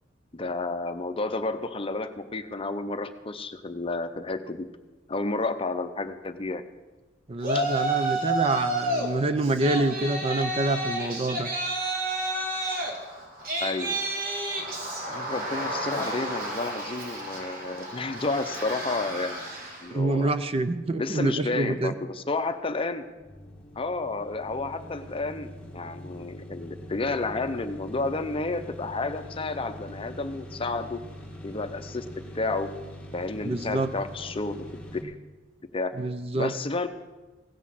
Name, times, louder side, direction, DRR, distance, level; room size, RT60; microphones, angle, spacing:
voice 1, 0.3-4.7 5.1-6.6 7.5-7.6 13.6-14.0 15.1-19.4 19.8-20.3 21.0-23.0 23.8-31.0 31.4-32.1 32.3-32.7 33.1-34.6 34.9-35.2 35.7-35.9 36.3-36.9, left 3 dB, 30° left, 9 dB, 0.7 m, -31 dB
voice 2, 7.3-11.5 19.9-21.9 33.4-33.9 36.0-36.5, right 2 dB, 30° right, 10 dB, 0.5 m, -27 dB
Yell, 7.4-9.1 9.4-19.9, right 2 dB, 45° right, 1.9 m, -31 dB
sound 1, 23.2-35.0, equal, 5° left, 1.4 m, -43 dB
16.0 x 6.2 x 7.5 m, 1.2 s
head